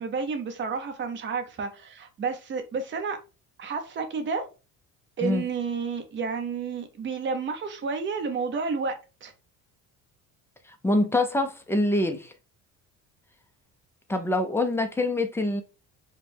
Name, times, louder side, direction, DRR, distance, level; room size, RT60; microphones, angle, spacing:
voice 1, 0.0-3.2 3.6-4.4 5.2-9.0 9.2-9.3, right 5 dB, 35° right, 0.8 m, -30 dB
voice 2, 10.8-12.3 14.1-15.6, left 2 dB, 5° left, 0.4 m, -25 dB
4.9 x 2.2 x 3.3 m
cardioid pair, 130°, 35 cm